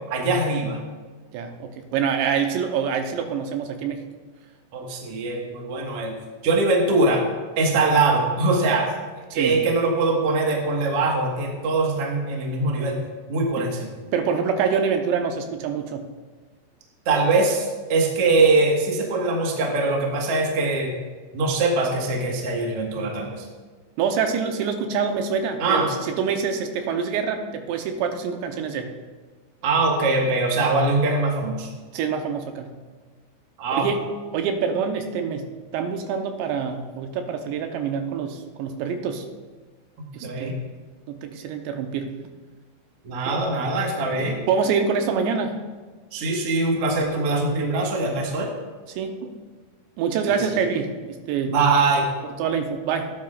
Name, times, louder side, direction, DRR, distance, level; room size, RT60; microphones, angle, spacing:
voice 1, 0.1-0.8 4.7-6.2 6.4-7.2 7.6-8.9 9.3-13.0 13.3-14.0 17.0-20.9 21.3-23.4 25.6-25.9 29.6-31.7 33.6-33.9 40.2-40.6 43.0-44.4 46.1-48.5 50.3-50.5 51.5-52.1, right 3 dB, 65° right, 0 dB, 1.4 m, -22 dB
voice 2, 1.3-4.0 9.3-9.6 14.1-16.1 24.0-25.9 26.2-28.9 31.9-32.7 33.8-34.0 34.3-39.2 40.1-40.5 41.1-42.1 43.3-43.4 44.5-45.6 49.0-49.3 50.0-51.6 52.4-53.1, right 6 dB, 80° right, 5 dB, 3.0 m, -26 dB
17.5 x 10.0 x 2.4 m, 1.4 s
omnidirectional pair, 5.2 m